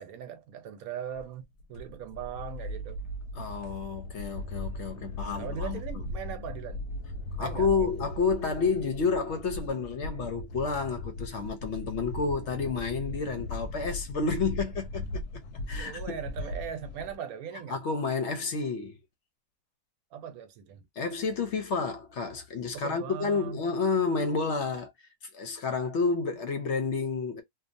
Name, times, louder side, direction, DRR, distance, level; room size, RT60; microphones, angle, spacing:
voice 1, 0.0-3.0 4.6-6.9 7.4-8.0 15.8-17.8 20.1-20.9 22.7-23.6, right 8 dB, 75° right, 1.1 m, -40 dB
sound 1, 1.2-17.2, left 2 dB, 90° left, 1.1 m, -38 dB
voice 2, 3.3-5.8 7.4-15.2 15.7-16.0 17.7-19.0 21.0-24.9 25.3-27.4, left 4 dB, 60° left, 0.8 m, -30 dB
2.7 x 2.2 x 2.5 m
omnidirectional pair, 1.6 m